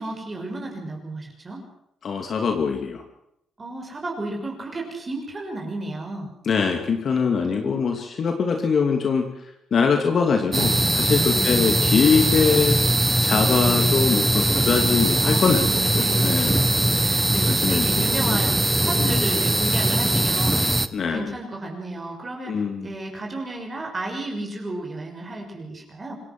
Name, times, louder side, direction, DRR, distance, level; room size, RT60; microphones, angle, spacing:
voice 1, 0.0-1.6 3.6-6.3 7.4-7.8 11.3-11.6 15.2-16.5 17.0-20.6 21.1-22.5 22.8-26.1, right 2 dB, 30° right, 1 dB, 6.3 m, -33 dB
voice 2, 2.0-3.0 6.4-9.2 9.7-12.8 13.2-16.6 17.4-18.4 19.0-19.2 20.9-21.3 22.4-22.9, left 5 dB, 50° left, 4 dB, 2.7 m, -23 dB
sound 1, 10.5-20.9, right 1 dB, 10° right, 1.2 m, -21 dB
26.5 x 17.5 x 6.2 m, 0.77 s
cardioid pair, 90°, 0 cm